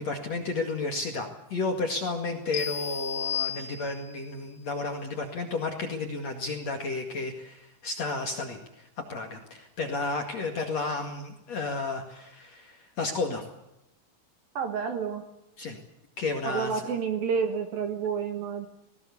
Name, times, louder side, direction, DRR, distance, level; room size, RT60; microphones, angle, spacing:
voice 1, 0.0-8.6 9.1-13.4 15.6-15.8 16.2-16.9, left 3 dB, 50° left, 4 dB, 2.4 m, -32 dB
sound 1, 2.5-4.3, left 8 dB, 85° left, 4.0 m, -33 dB
voice 2, 14.6-15.2 16.4-18.7, right 6 dB, 65° right, 7 dB, 2.7 m, -29 dB
19.5 x 18.5 x 8.4 m, 0.87 s
omnidirectional pair, 5.5 m